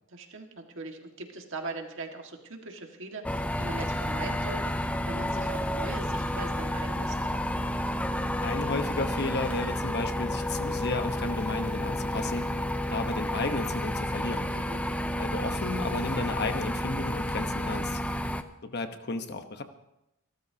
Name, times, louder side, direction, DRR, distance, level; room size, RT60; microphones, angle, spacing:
voice 1, 0.1-7.2 14.5-14.9, right 3 dB, 60° right, 3 dB, 1.9 m, -40 dB
sound 1, 3.2-18.4, left 1 dB, 5° left, 0.5 m, -31 dB
voice 2, 8.4-12.5 12.9-14.5 15.2-18.0 18.6-19.6, left 3 dB, 50° left, 7 dB, 1.1 m, -33 dB
27.5 x 13.0 x 2.9 m, 0.88 s
head